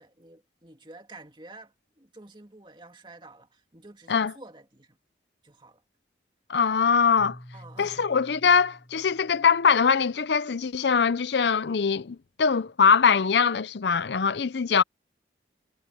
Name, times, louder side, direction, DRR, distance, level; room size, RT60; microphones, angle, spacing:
voice 1, 0.0-5.0 5.4-5.8 7.5-8.1, right 2 dB, 25° right, 2.4 m, -49 dB
voice 2, 6.5-7.4 7.8-14.8, left 6 dB, 70° left, 0.6 m, -22 dB
Keyboard (musical), 7.2-10.1, equal, 25° left, 4.6 m, -49 dB
head